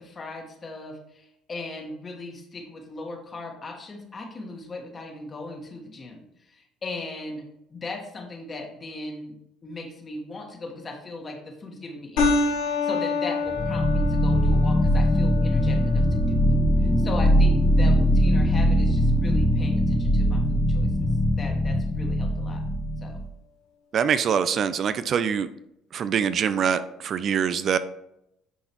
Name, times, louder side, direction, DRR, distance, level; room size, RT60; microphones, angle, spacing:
voice 1, 0.0-9.4 9.6-22.6 23.0-23.2, left 2 dB, 35° left, 3 dB, 1.5 m, -38 dB
sound 1, 12.2-21.1, left 3 dB, 85° left, 2.0 m, -30 dB
sound 2, 13.5-23.3, equal, 5° left, 0.9 m, -21 dB
voice 2, 23.9-25.5 25.9-27.8, right 7 dB, 50° right, 12 dB, 0.4 m, -24 dB
10.0 x 3.9 x 3.0 m, 0.81 s
supercardioid pair, 85°, 0 cm